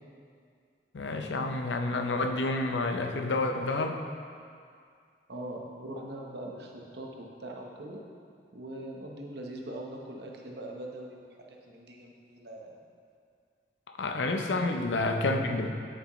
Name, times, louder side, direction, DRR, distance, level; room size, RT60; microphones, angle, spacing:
voice 1, 0.9-4.0 14.0-15.7, left 2 dB, 80° left, 5 dB, 0.6 m, -29 dB
voice 2, 5.3-8.0 8.5-12.8, right 1 dB, 65° right, 0 dB, 1.0 m, -42 dB
8.6 x 7.6 x 3.1 m, 2.2 s
head